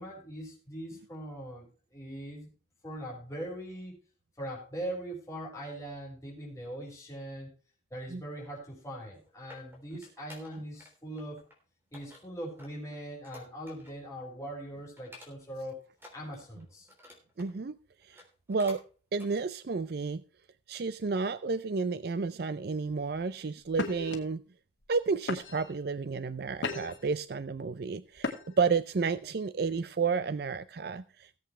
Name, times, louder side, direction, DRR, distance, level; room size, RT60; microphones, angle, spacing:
voice 1, 0.0-1.7 1.9-2.5 2.8-4.0 4.4-7.5 7.9-11.4 11.9-15.9 16.1-16.9, right 1 dB, 15° left, -3 dB, 5.7 m, -41 dB
sound 1, 8.9-10.9 11.2-11.6 11.9-14.1 14.4-14.6 15.0-15.6 15.9-17.5 18.0-18.8 19.1-19.3 19.8-19.9, left 1 dB, 10° right, 3.4 m, -53 dB
voice 2, 17.4-17.8 18.0-18.2 18.5-18.8 19.1-20.2 20.7-24.4 24.9-28.3 28.6-31.4, right 4 dB, 55° right, 14 dB, 0.5 m, -31 dB
sound 2, 22.9-23.2 23.7-24.2 24.8-25.0 25.3-25.8 26.3-27.1 28.2-28.7, left 3 dB, 75° left, 2.3 m, -36 dB
18.5 x 8.0 x 3.3 m, 0.36 s
head